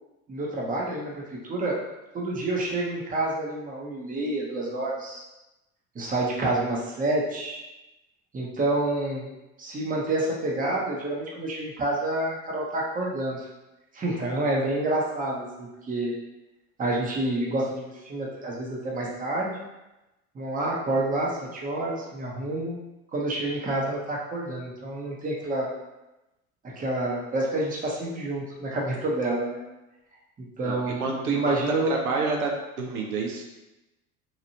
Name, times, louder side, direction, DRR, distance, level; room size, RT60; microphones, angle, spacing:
voice 1, 0.3-1.8 2.1-5.2 5.9-7.6 8.3-9.3 9.6-13.4 13.9-16.1 16.8-19.6 20.3-22.8 23.1-25.7 26.8-29.6 30.4-32.0, right 2 dB, 20° right, -3 dB, 0.8 m, -28 dB
voice 2, 30.6-31.4 31.9-33.4, right 4 dB, 85° right, 1 dB, 0.6 m, -29 dB
2.9 x 2.5 x 2.8 m, 0.98 s
hypercardioid pair, 75°, 43 cm